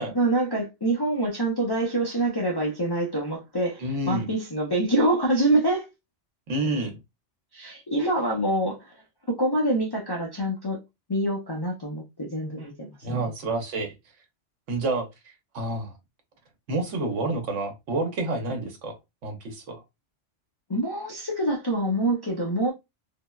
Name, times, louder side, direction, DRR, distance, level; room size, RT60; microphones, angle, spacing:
voice 1, 0.0-5.9 7.5-8.9 9.3-10.8 11.1-13.3 20.7-22.7, right 1 dB, 40° left, 0.3 m, -26 dB
voice 2, 3.8-4.3 6.5-7.0 13.0-13.9 14.7-15.1 15.5-15.9 16.7-18.9 19.2-19.8, right 2 dB, 85° right, 1.1 m, -28 dB
3.5 x 2.0 x 2.2 m
omnidirectional pair, 1.2 m